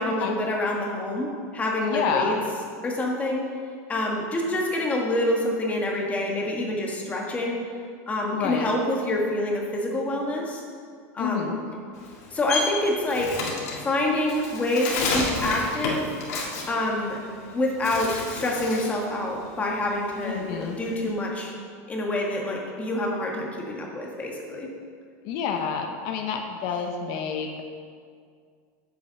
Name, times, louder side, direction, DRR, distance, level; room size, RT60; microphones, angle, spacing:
voice 1, 0.0-2.3 2.8-3.5 3.9-7.6 8.1-10.6 11.1-11.5 12.3-13.4 13.8-16.1 16.7-17.2 17.5-21.5 21.9-24.7, left 1 dB, 15° left, -1 dB, 1.5 m, -27 dB
voice 2, 1.8-2.4 8.3-8.7 11.2-11.6 20.2-20.8 25.2-27.6, left 6 dB, 55° left, 4 dB, 0.8 m, -29 dB
Bird, 11.9-17.4 17.7-19.0 19.4-21.1, left 3 dB, 85° left, 2.1 m, -31 dB
7.6 x 5.5 x 7.5 m, 2.1 s
supercardioid pair, 150°, 8 cm